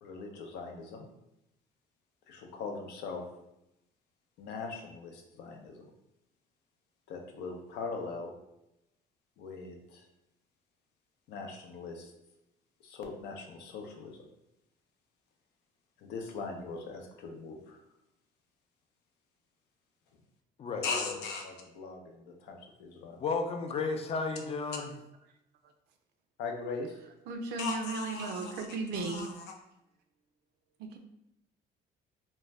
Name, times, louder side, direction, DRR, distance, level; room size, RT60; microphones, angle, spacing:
voice 1, 0.0-1.1 2.3-3.2 4.4-5.9 7.1-8.3 9.4-10.1 11.3-12.1 12.8-14.2 16.0-17.8 20.8-23.2 26.4-27.0 27.6-28.7 29.0-29.5, left 4 dB, 85° left, 2 dB, 0.6 m, -40 dB
voice 2, 20.6-21.2 23.2-24.9, left 4 dB, 35° left, 5 dB, 0.4 m, -33 dB
voice 3, 27.3-29.3 30.8-31.0, right 3 dB, 75° right, 5 dB, 0.4 m, -35 dB
2.5 x 2.2 x 3.2 m, 0.86 s
cardioid pair, 110°, 17 cm